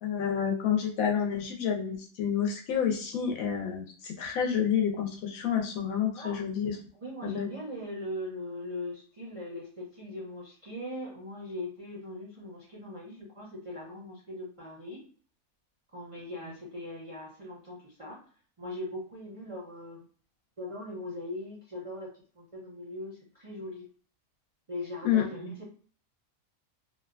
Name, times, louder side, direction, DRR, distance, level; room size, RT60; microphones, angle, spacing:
voice 1, 0.0-6.8 7.2-7.5 25.0-25.2, left 8 dB, 80° left, 1 dB, 1.1 m, -29 dB
voice 2, 7.0-15.0 15.9-18.2 18.6-20.0 20.6-22.1 22.3-23.8 24.7-25.6, left 1 dB, 45° right, -5 dB, 0.4 m, -40 dB
2.7 x 2.2 x 2.4 m, 0.43 s
omnidirectional pair, 1.5 m